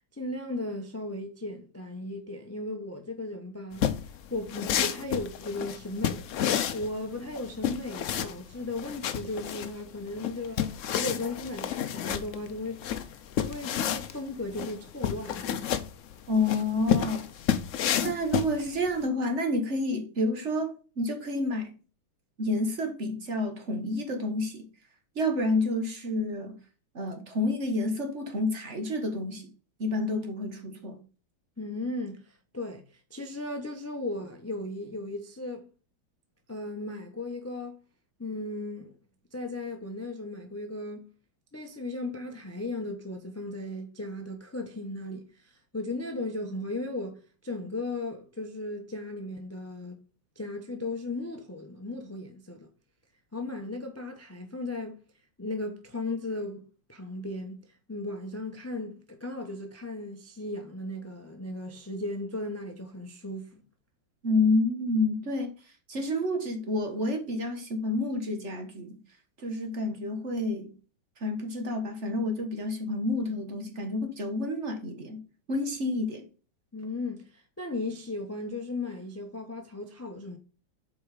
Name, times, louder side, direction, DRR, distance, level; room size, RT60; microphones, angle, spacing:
voice 1, 0.1-3.9 4.3-6.2 6.7-12.9 13.4-15.5 31.6-35.7 36.5-37.8 38.2-38.9 39.3-41.1 41.5-50.0 50.4-52.7 53.3-55.0 55.4-57.6 57.9-63.6 76.7-80.4, left 2 dB, 20° left, 0.3 m, -36 dB
sound 1, 3.7-19.0, left 9 dB, 80° left, 0.6 m, -31 dB
voice 2, 16.3-17.3 18.0-21.7 22.4-24.7 25.1-26.6 26.9-29.5 29.8-31.0 64.2-65.5 65.9-69.0 69.4-70.7 71.2-75.2 75.5-76.3, left 2 dB, 40° right, 1.4 m, -29 dB
7.3 x 4.7 x 4.8 m
omnidirectional pair, 2.2 m